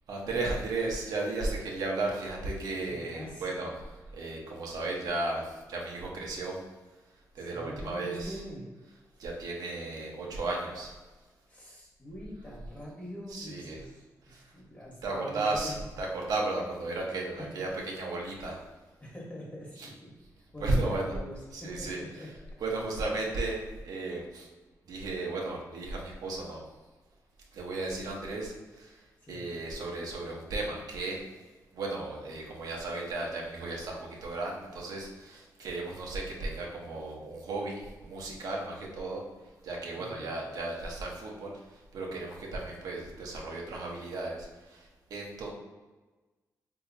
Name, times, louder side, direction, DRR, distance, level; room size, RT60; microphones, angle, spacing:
voice 1, 0.1-6.6 7.3-8.4 9.2-11.0 13.3-13.8 14.2-14.5 15.0-18.6 19.8-19.9 20.6-21.0 21.5-22.3 22.6-24.5 24.9-26.6 27.5-31.2 31.7-39.2 39.6-45.5, right 2 dB, 85° right, -1 dB, 0.7 m, -35 dB
voice 2, 2.9-3.5 7.4-8.7 11.5-14.0 14.5-15.8 19.0-20.1 20.5-22.3 29.2-29.5 40.0-40.3, equal, 25° left, -4 dB, 1.1 m, -43 dB
3.8 x 2.7 x 2.5 m, 1.2 s
cardioid pair, 100°, 6 cm